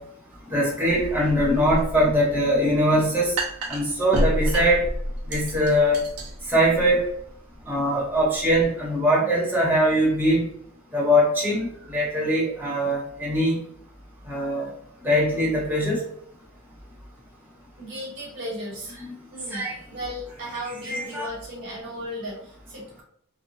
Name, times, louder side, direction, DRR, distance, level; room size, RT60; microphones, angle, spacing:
voice 1, 0.5-3.3 3.7-4.8 5.3-6.0 6.5-7.0 7.7-10.5 10.9-13.6 14.3-14.7 15.0-16.0 19.5-19.7 20.8-21.3, equal, 10° right, -6 dB, 0.9 m, -22 dB
sound 1, 0.9-8.6, equal, 80° right, 0.8 m, -30 dB
voice 2, 17.8-18.9 19.3-23.0, equal, 60° right, -3 dB, 1.4 m, -36 dB
3.0 x 2.0 x 2.5 m, 0.68 s
head